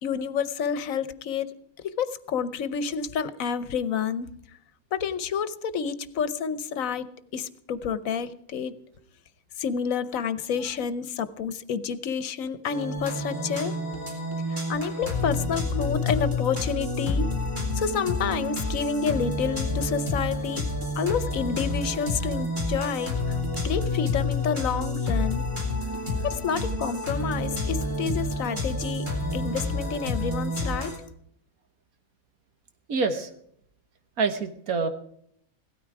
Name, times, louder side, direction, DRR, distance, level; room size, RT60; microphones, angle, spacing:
voice 1, 0.0-4.3 4.9-7.1 7.3-8.7 9.6-13.7 14.5-17.3 17.7-20.6 21.0-25.4 26.2-29.1 29.3-30.9, left 7 dB, 70° left, 14 dB, 1.2 m, -29 dB
sound 1, 12.6-31.0, left 2 dB, 20° right, 3.7 m, -29 dB
voice 2, 32.9-33.3 34.2-34.9, right 4 dB, 90° right, 7 dB, 1.8 m, -26 dB
17.0 x 13.0 x 4.7 m, 0.69 s
omnidirectional pair, 1.5 m